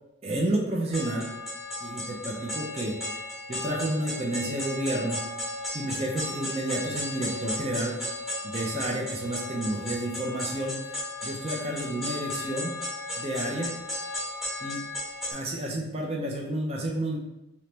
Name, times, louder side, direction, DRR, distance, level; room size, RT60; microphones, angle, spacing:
voice 1, 0.2-1.3 1.8-3.0 3.5-5.2 5.7-8.0 8.4-10.8 11.2-12.8 13.2-13.7 14.6-14.8 15.3-17.2, right 1 dB, 30° right, -1 dB, 0.4 m, -30 dB
sound 1, 0.9-15.3, left 1 dB, ahead, 1.0 m, -35 dB
3.0 x 2.9 x 3.3 m, 0.93 s
head